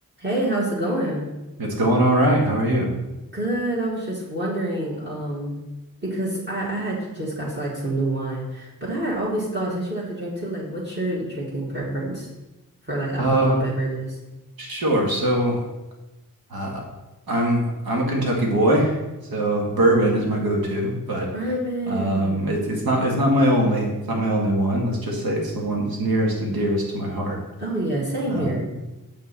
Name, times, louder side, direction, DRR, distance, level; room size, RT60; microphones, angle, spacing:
voice 1, 0.2-1.3 3.3-5.6 6.0-12.3 12.9-14.2 21.3-22.5 27.6-28.7, right 1 dB, 30° right, -4 dB, 1.9 m, -27 dB
voice 2, 1.6-2.9 13.2-13.6 14.6-15.6 16.5-16.8 17.3-19.0 19.3-21.3 21.9-27.4 28.3-28.6, right 1 dB, 80° right, 0 dB, 1.7 m, -22 dB
6.9 x 5.5 x 4.2 m, 1.0 s
wide cardioid pair, 85°, 36 cm